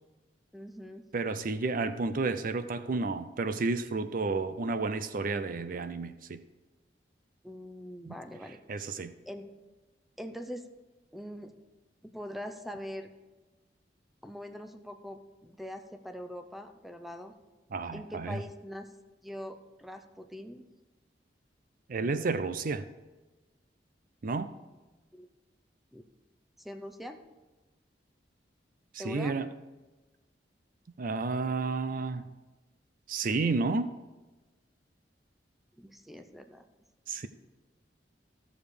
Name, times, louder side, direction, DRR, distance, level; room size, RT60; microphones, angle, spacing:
voice 1, 0.5-1.0 7.4-8.6 9.3-9.5 10.2-10.7 11.1-11.5 12.0-13.1 14.2-17.3 17.9-18.9 19.2-20.7 25.1-25.3 25.9-26.0 26.6-27.2 29.0-29.4 35.8-36.7, equal, ahead, 0.7 m, -42 dB
voice 2, 1.1-6.4 8.0-8.1 8.7-9.1 17.7-18.4 21.9-22.9 24.2-24.5 28.9-29.5 31.0-32.3 33.1-33.9 37.1-37.3, right 3 dB, 50° right, 0.5 m, -31 dB
14.0 x 7.0 x 4.8 m
head